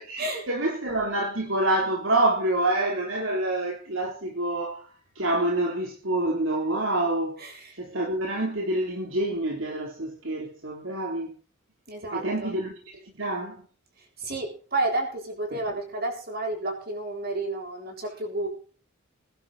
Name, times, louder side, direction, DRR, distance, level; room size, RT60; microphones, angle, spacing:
voice 1, 0.1-4.8 5.2-7.4 7.8-11.3 12.1-13.6 15.5-15.6, right 1 dB, 70° right, 3.5 m, -27 dB
voice 2, 7.4-7.8 11.9-12.5 14.2-18.5, right 2 dB, 50° right, 7.5 m, -31 dB
22.5 x 11.5 x 4.2 m
head